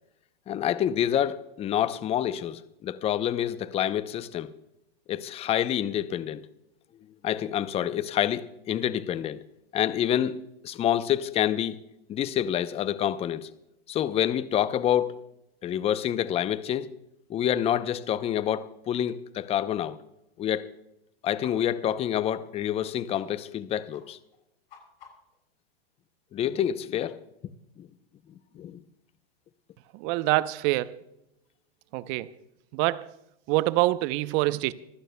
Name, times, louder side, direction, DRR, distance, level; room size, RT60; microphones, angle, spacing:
voice 1, 0.5-4.5 5.1-6.5 7.2-9.4 9.7-11.8 12.1-13.5 13.9-15.1 15.6-16.9 17.3-20.0 20.4-20.7 21.2-24.2 26.3-27.2 27.8-27.9 28.5-28.8, left 10 dB, 20° left, 0.6 m, -27 dB
sound 1, 21.4-21.5 21.8-21.9 22.2-22.3 22.7-22.8 23.1-23.2 23.5-23.6 23.9-24.0 24.3-25.4, left 8 dB, 75° left, 7.1 m, -52 dB
voice 2, 29.9-31.0 31.9-32.3 32.7-33.1 33.5-34.7, right 18 dB, 40° right, 0.7 m, -25 dB
25.5 x 15.5 x 2.2 m
hypercardioid pair, 125°, 30 cm